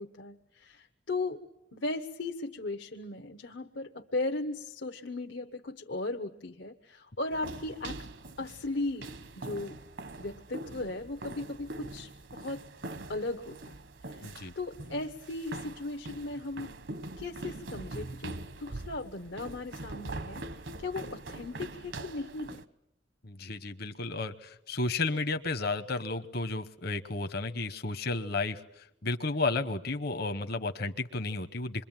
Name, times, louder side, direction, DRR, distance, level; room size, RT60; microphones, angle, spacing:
voice 1, 0.0-1.4 1.7-8.0 8.4-9.1 9.4-9.8 10.2-12.6 13.1-13.8 14.0-16.7 17.2-20.4 20.8-22.6, left 2 dB, 85° left, 4 dB, 1.2 m, -37 dB
sound 1, 7.3-22.6, right 2 dB, 75° right, 1.2 m, -43 dB
voice 2, 14.2-14.5 23.2-31.8, left 3 dB, 60° left, 9 dB, 1.0 m, -33 dB
27.0 x 23.0 x 9.0 m, 0.79 s
head